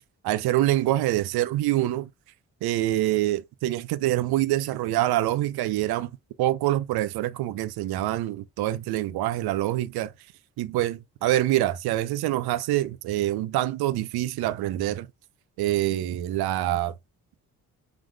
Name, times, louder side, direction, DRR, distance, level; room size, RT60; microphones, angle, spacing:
voice 1, 0.2-2.1 2.6-6.1 6.4-10.1 10.6-15.1 15.6-16.9, right 14 dB, 80° right, 0.6 m, -25 dB
4.7 x 4.0 x 2.2 m
supercardioid pair, 60°, 37 cm